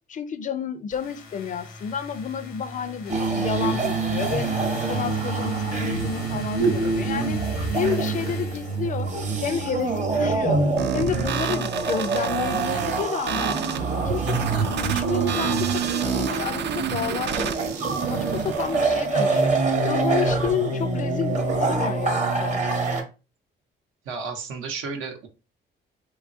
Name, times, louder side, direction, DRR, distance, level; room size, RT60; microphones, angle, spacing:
voice 1, 0.1-4.5 4.9-7.4 7.7-9.1 9.4-10.6 10.9-13.6 14.0-22.8, left 7 dB, 40° left, 0.4 m, -30 dB
sound 1, 0.9-9.2, left 4 dB, 85° left, 0.7 m, -40 dB
sound 2, 3.1-23.0, right 3 dB, 35° right, 0.8 m, -25 dB
sound 3, 10.8-18.8, right 8 dB, 60° right, 0.4 m, -30 dB
voice 2, 24.0-25.3, right 4 dB, 90° right, 0.8 m, -32 dB
3.0 x 2.3 x 2.5 m
cardioid pair, 90°, 20 cm